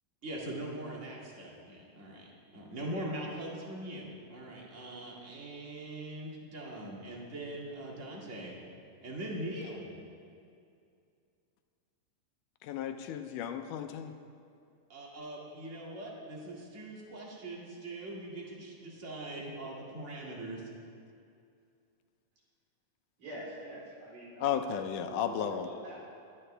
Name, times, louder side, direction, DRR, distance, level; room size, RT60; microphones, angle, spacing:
voice 1, 0.2-2.3 2.5-8.6 9.0-9.9 14.9-20.6, right 1 dB, 25° right, -3 dB, 2.0 m, -41 dB
voice 2, 12.6-14.1 24.4-25.7, left 8 dB, 80° left, 7 dB, 2.2 m, -34 dB
voice 3, 23.2-24.8 25.1-26.0, right 1 dB, 75° right, -6 dB, 5.3 m, -45 dB
22.0 x 11.5 x 3.4 m, 2.4 s
omnidirectional pair, 3.7 m